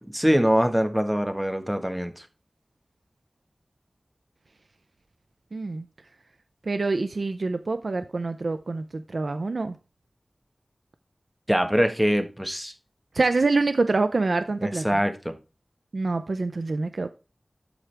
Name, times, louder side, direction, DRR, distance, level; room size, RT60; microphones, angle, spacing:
voice 1, 0.1-2.2 11.5-12.7 14.6-15.3, equal, 10° right, 1.3 m, -23 dB
voice 2, 5.5-5.9 6.7-9.8 13.1-15.0 15.9-17.1, right 3 dB, 75° right, 0.5 m, -26 dB
12.0 x 5.0 x 3.4 m
wide cardioid pair, 75°, 0 cm